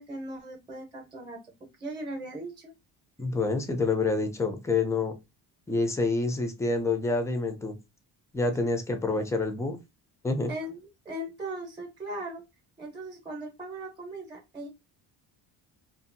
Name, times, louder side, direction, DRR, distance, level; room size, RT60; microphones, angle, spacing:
voice 1, 0.0-1.4 1.8-2.7 10.5-12.4 12.8-14.7, right 1 dB, 10° right, 0.8 m, -38 dB
voice 2, 3.2-5.2 5.7-7.8 8.3-9.8 10.2-10.5, left 3 dB, 5° left, 0.4 m, -27 dB
2.7 x 2.4 x 2.6 m
cardioid pair, 135°, 44 cm